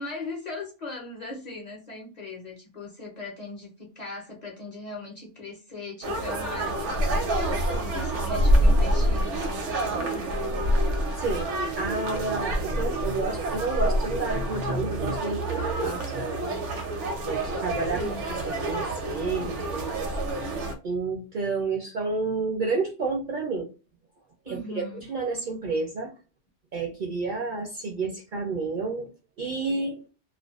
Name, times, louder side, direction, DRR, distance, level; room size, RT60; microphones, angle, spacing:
voice 1, 0.0-10.3 17.9-18.3 24.5-25.0, left 3 dB, 45° left, -2 dB, 0.7 m, -39 dB
sound 1, 6.0-20.7, right 1 dB, 75° right, 1.0 m, -27 dB
voice 2, 11.2-11.5 11.8-16.4 17.3-18.0 18.3-20.1 20.8-23.7 24.5-26.1 26.7-29.1 29.4-30.0, right 3 dB, 55° right, 0 dB, 0.6 m, -30 dB
2.4 x 2.2 x 2.3 m, 0.32 s
omnidirectional pair, 1.2 m